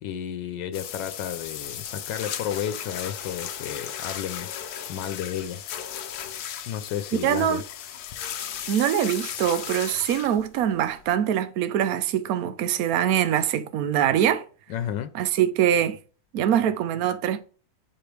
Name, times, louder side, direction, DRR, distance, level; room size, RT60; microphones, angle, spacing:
voice 1, 0.0-4.5 4.9-5.6 6.7-7.6 14.7-15.1, left 10 dB, 90° left, 1.4 m, -32 dB
sound 1, 0.7-11.1, left 9 dB, 70° left, 1.2 m, -36 dB
voice 2, 7.2-7.6 8.7-14.4 15.1-16.0 16.3-17.4, right 10 dB, 65° right, 1.1 m, -23 dB
5.6 x 5.1 x 4.6 m
omnidirectional pair, 1.9 m